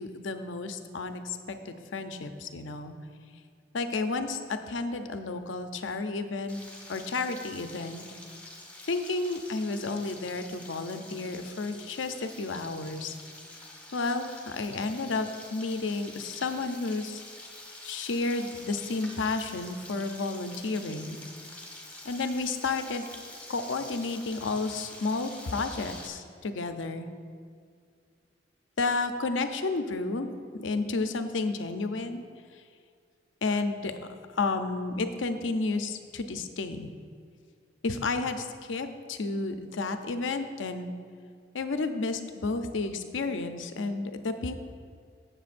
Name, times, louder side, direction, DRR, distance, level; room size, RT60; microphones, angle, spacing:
voice 1, 0.0-3.0 3.7-6.6 6.9-8.1 8.9-13.1 13.9-17.2 17.8-21.2 22.0-23.0 23.5-27.1 28.8-30.3 30.6-32.2 33.4-33.9 34.3-36.9 37.8-40.9 41.5-44.5, left 3 dB, 80° left, 7 dB, 0.6 m, -31 dB
Frying (food), 6.5-26.1, left 2 dB, 10° left, 1.2 m, -47 dB
15.5 x 6.8 x 2.6 m, 2.2 s
head